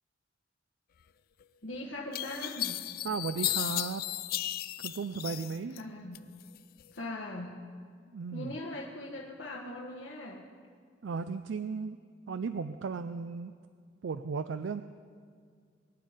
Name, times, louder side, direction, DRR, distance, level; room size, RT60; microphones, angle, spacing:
sound 1, 1.4-1.5 2.1-5.8 6.1-6.9, left 14 dB, 55° left, 0.4 m, -35 dB
voice 1, 1.6-2.8 5.7-6.2 6.9-7.5 8.3-10.4, left 1 dB, 90° left, -3 dB, 1.5 m, -40 dB
voice 2, 3.0-4.0 4.8-5.8 8.1-8.5 11.0-12.0 12.3-13.5 14.0-14.8, right 5 dB, 90° right, 11 dB, 0.4 m, -35 dB
23.0 x 9.9 x 5.1 m, 2.1 s
head